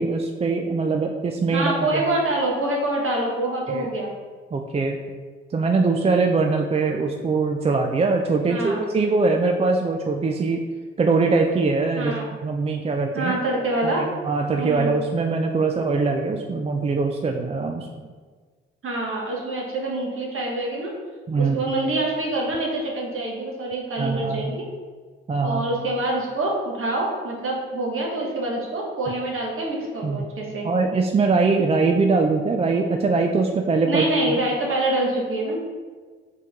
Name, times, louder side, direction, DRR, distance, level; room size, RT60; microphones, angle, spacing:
voice 1, 0.0-2.0 3.7-3.9 4.5-5.0 5.5-10.6 11.0-12.1 12.4-13.3 13.8-18.1 21.3-21.7 24.0-24.5 25.3-25.6 30.0-30.3 30.6-34.4, right 3 dB, 20° right, 3 dB, 0.4 m, -22 dB
voice 2, 1.5-4.1 8.5-8.8 12.0-12.3 13.1-14.1 14.6-14.9 18.8-21.0 21.4-24.7 25.4-30.7 33.9-35.7, right 1 dB, 45° right, -1 dB, 1.4 m, -26 dB
4.4 x 3.1 x 3.5 m, 1.5 s
hypercardioid pair, 50°, 29 cm